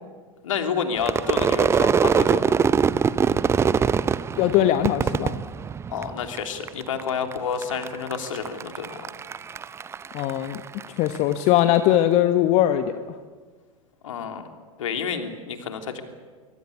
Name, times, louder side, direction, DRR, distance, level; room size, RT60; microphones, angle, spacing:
voice 1, 0.4-2.6 5.9-9.0 14.0-14.5 14.8-16.0, left 6 dB, 60° left, 5 dB, 3.2 m, -29 dB
Crowd / Fireworks, 1.0-6.4 6.7-7.3 7.6-11.2, right 6 dB, 15° right, 0.7 m, -23 dB
voice 2, 4.4-5.4 10.1-10.6 11.0-13.0, left 12 dB, 35° left, 9 dB, 1.2 m, -20 dB
25.0 x 24.0 x 8.6 m, 1.5 s
figure-of-eight pair, 95°, 18 cm